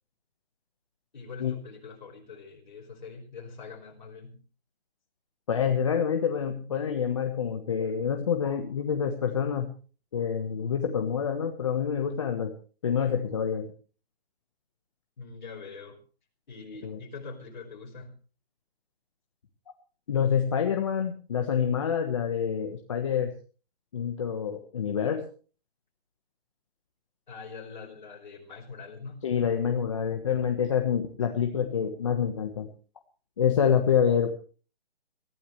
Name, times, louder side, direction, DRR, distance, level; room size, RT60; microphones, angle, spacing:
voice 1, 1.1-4.4 15.2-16.0 16.5-18.1 27.3-29.3, left 4 dB, 45° left, 3 dB, 5.1 m, -43 dB
voice 2, 5.5-9.7 10.1-12.5 12.8-13.7 16.8-17.0 20.1-23.3 23.9-25.3 29.2-32.7 33.4-34.3, left 7 dB, 30° left, 4 dB, 1.3 m, -27 dB
22.5 x 15.5 x 3.3 m, 0.39 s
hypercardioid pair, 170°, 32 cm